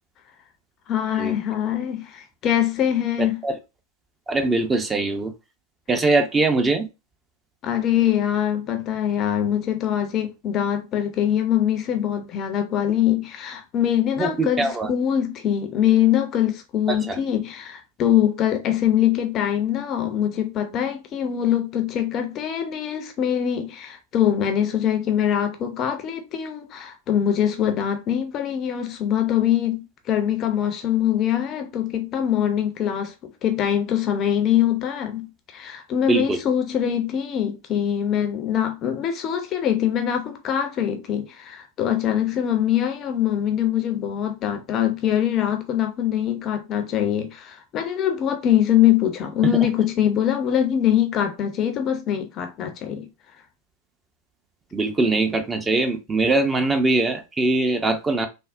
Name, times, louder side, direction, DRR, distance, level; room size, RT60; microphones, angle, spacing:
voice 1, 0.9-3.4 7.6-33.1 33.4-53.1, left 10 dB, 35° left, 0.5 m, -23 dB
voice 2, 3.2-3.5 4.3-5.3 5.9-6.9 14.2-14.9 16.9-17.2 36.1-36.4 54.7-58.3, right 2 dB, 15° right, 0.5 m, -22 dB
3.5 x 2.0 x 2.4 m
figure-of-eight pair, 90°, 0 cm